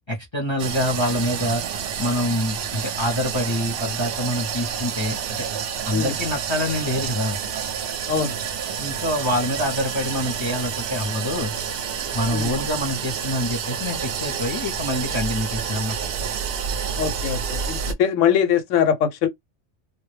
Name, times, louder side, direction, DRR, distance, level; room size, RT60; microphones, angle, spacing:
voice 1, 0.1-1.6 2.0-5.4 5.8-7.4 8.8-11.5 12.1-16.0, left 1 dB, 35° left, 0.5 m, -26 dB
sound 1, 0.6-17.9, right 7 dB, 65° right, 0.7 m, -29 dB
voice 2, 17.0-19.3, left 8 dB, 90° left, 1.0 m, -22 dB
2.2 x 2.1 x 3.1 m
omnidirectional pair, 1.3 m